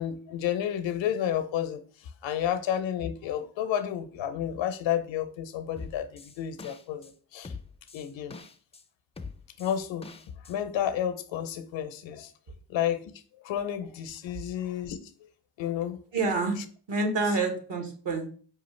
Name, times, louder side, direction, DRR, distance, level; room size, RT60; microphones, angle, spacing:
voice 1, 0.0-7.5 7.9-8.3 9.6-10.1 10.5-12.3 12.7-13.1 13.4-15.3 15.6-16.0, left 10 dB, 75° left, 0.6 m, -31 dB
sound 1, 5.7-7.1 7.4-8.8 9.2-10.5, left 4 dB, 15° left, 0.3 m, -43 dB
voice 2, 16.1-16.6 16.9-18.3, right 3 dB, 65° right, 1.3 m, -27 dB
5.1 x 2.4 x 3.1 m
supercardioid pair, 50°, 46 cm